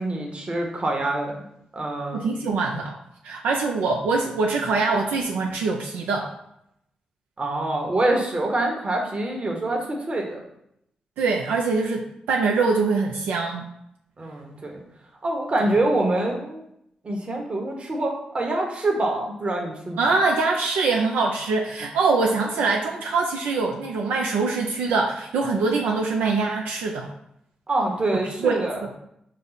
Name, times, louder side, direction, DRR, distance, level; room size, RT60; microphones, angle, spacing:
voice 1, 0.0-1.4 1.7-2.2 7.4-10.4 14.2-14.8 15.2-16.6 17.0-20.0 27.7-28.8, right 2 dB, 40° right, 1 dB, 1.1 m, -25 dB
voice 2, 2.1-2.9 3.2-6.3 11.2-13.7 20.0-27.1 28.4-28.6 28.8-28.9, right 4 dB, 85° right, 0 dB, 0.4 m, -23 dB
5.3 x 2.0 x 3.9 m, 0.77 s
supercardioid pair, 45°, 3 cm